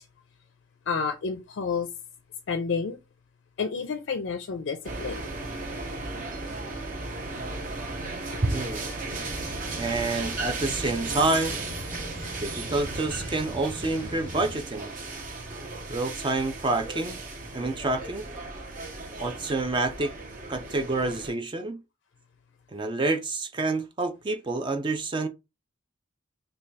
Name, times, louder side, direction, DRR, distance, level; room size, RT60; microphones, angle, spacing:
voice 1, 0.9-1.9 2.5-3.0 3.6-5.3, left 5 dB, 60° left, 0.4 m, -30 dB
sound 1, 4.8-21.3, right 3 dB, 40° right, 0.7 m, -36 dB
voice 2, 8.4-8.8 9.7-11.6 12.4-14.9 15.9-17.2 17.5-18.2 19.2-20.1 20.5-21.8 22.7-25.3, right 2 dB, 25° right, 0.4 m, -28 dB
sound 2, 9.2-14.6, left 1 dB, 10° left, 0.9 m, -40 dB
3.2 x 2.2 x 3.9 m
head